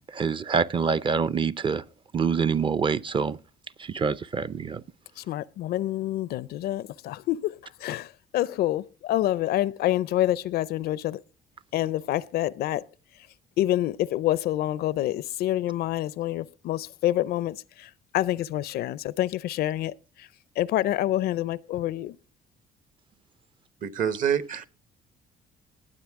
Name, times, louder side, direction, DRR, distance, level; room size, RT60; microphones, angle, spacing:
voice 1, 0.1-1.8 2.1-3.4 3.9-4.8, right 5 dB, 30° right, 0.5 m, -25 dB
voice 2, 5.3-7.5 7.8-8.1 8.3-11.2 11.7-12.8 13.6-17.6 18.1-19.9 20.6-22.1, left 14 dB, 65° left, 0.5 m, -27 dB
voice 3, 23.8-24.7, right 8 dB, 50° right, 1.1 m, -26 dB
19.5 x 7.5 x 3.5 m
cardioid pair, 110°, 17 cm